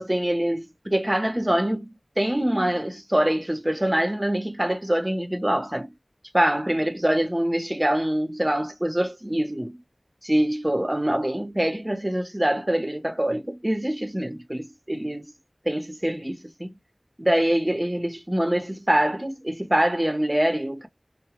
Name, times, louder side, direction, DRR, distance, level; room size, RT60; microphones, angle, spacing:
voice 1, 0.0-5.9 6.3-9.7 10.2-15.3 15.6-16.7 17.2-20.9, right 1 dB, 20° right, 0.7 m, -24 dB
2.3 x 2.1 x 2.9 m
wide cardioid pair, 45°, 0 cm